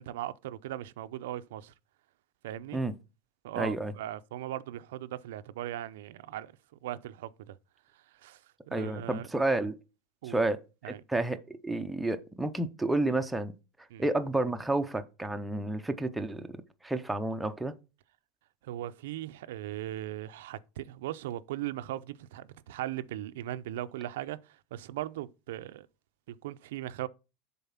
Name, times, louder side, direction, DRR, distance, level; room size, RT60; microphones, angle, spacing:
voice 1, 0.0-1.7 2.4-2.8 3.4-6.6 6.8-7.6 8.2-8.4 8.7-9.3 10.2-10.4 10.8-11.0 13.9-14.1 18.6-25.9 26.3-27.1, right 13 dB, 80° right, 0.5 m, -38 dB
voice 2, 3.6-3.9 8.7-9.8 10.3-10.6 10.9-13.5 14.0-16.5 16.8-17.7, right 2 dB, 5° right, 0.5 m, -30 dB
7.1 x 4.0 x 5.6 m
supercardioid pair, 175°, 0 cm